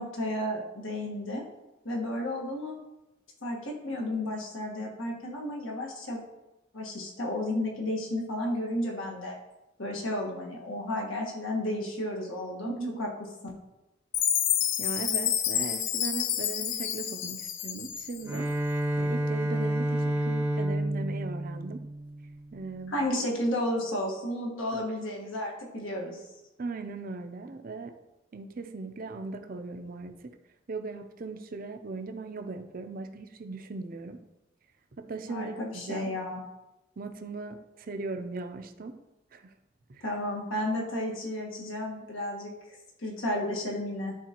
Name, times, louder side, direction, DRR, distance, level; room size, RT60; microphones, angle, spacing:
voice 1, 0.0-1.4 1.8-2.7 3.4-6.2 6.7-9.4 9.8-13.1 22.9-26.2 35.3-36.4 40.0-42.5 43.0-44.2, left 1 dB, 80° left, -1 dB, 1.5 m, -32 dB
voice 2, 12.6-13.0 14.8-18.5 19.0-21.8 22.5-23.0 24.7-24.8 26.6-27.9 28.3-30.4 30.7-34.2 35.0-36.1 37.0-38.9 39.3-39.5 39.9-40.0, right 3 dB, 45° right, 7 dB, 0.5 m, -38 dB
Chime, 14.1-18.4, left 10 dB, 65° left, 0.4 m, -29 dB
Bowed string instrument, 18.2-22.5, right 1 dB, 10° right, 0.7 m, -30 dB
11.0 x 3.8 x 2.9 m, 0.99 s
head